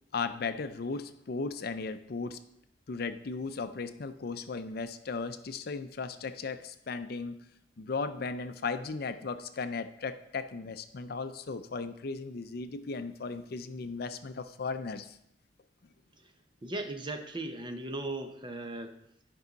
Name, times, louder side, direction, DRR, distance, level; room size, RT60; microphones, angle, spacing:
voice 1, 0.1-2.4 2.9-7.4 7.8-15.2, left 4 dB, 60° left, 10 dB, 0.5 m, -36 dB
voice 2, 16.6-19.0, right 2 dB, 25° right, 5 dB, 0.8 m, -37 dB
10.5 x 5.4 x 4.0 m, 0.76 s
head